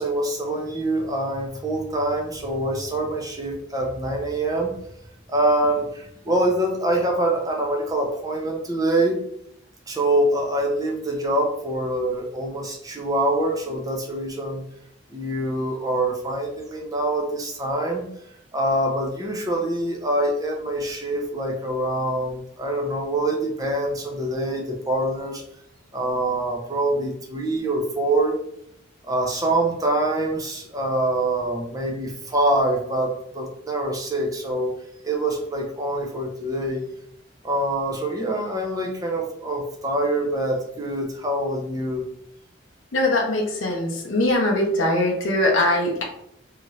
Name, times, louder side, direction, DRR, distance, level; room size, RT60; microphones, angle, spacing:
voice 1, 0.0-4.7 5.3-9.2 9.9-14.6 15.1-18.1 18.5-25.4 25.9-28.4 29.1-34.7 35.0-36.8 37.4-42.1, right 1 dB, 20° right, 0 dB, 0.5 m, -25 dB
voice 2, 42.9-46.0, left 1 dB, 75° left, 0 dB, 0.6 m, -21 dB
2.7 x 2.4 x 3.1 m, 0.73 s
head